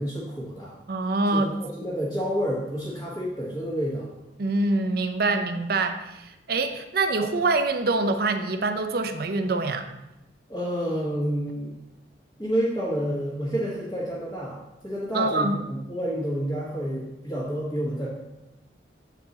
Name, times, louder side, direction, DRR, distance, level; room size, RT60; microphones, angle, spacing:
voice 1, 0.0-0.7 1.3-4.1 10.5-11.7 12.4-14.6 14.8-18.1, equal, 20° left, -10 dB, 1.4 m, -29 dB
voice 2, 0.9-1.5 4.4-9.9 15.1-15.6, right 3 dB, 55° right, 8 dB, 0.5 m, -25 dB
8.0 x 4.5 x 4.1 m, 0.94 s
head